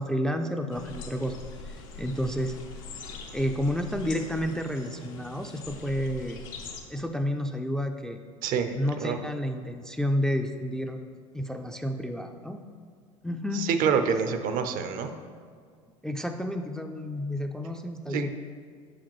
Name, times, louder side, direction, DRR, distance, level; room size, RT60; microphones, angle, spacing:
voice 1, 0.0-1.4 2.0-2.6 3.3-6.4 6.9-8.2 8.8-11.0 11.3-12.6 13.2-13.7 16.0-18.3, equal, 5° left, 5 dB, 0.3 m, -30 dB
sound 1, 0.7-6.8, left 4 dB, 80° left, 0.7 m, -43 dB
voice 2, 8.4-9.2 13.5-15.1 18.1-18.3, right 6 dB, 55° right, 8 dB, 0.5 m, -27 dB
6.8 x 4.9 x 3.0 m, 2.1 s
hypercardioid pair, 80°, 17 cm